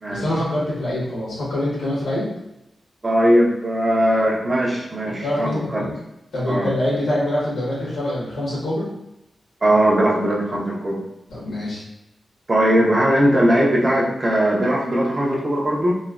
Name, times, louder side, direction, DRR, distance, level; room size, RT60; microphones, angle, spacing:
voice 1, 0.1-2.3 5.2-5.9 6.3-8.9 11.3-11.8, left 1 dB, 90° left, -6 dB, 1.1 m, -24 dB
voice 2, 3.0-5.8 6.5-6.7 9.6-11.0 12.5-15.9, right 1 dB, 25° right, -3 dB, 0.5 m, -19 dB
3.1 x 2.1 x 2.3 m, 0.89 s
wide cardioid pair, 170°, 0 cm